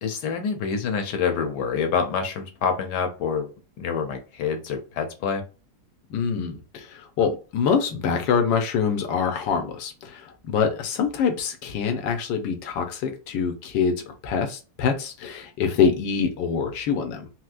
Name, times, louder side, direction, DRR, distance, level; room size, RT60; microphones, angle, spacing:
voice 1, 0.0-3.5 3.8-5.4, left 6 dB, 75° left, 6 dB, 1.2 m, -26 dB
voice 2, 6.1-17.3, left 6 dB, 90° left, 5 dB, 1.4 m, -25 dB
4.3 x 2.0 x 2.4 m, 0.33 s
omnidirectional pair, 1.9 m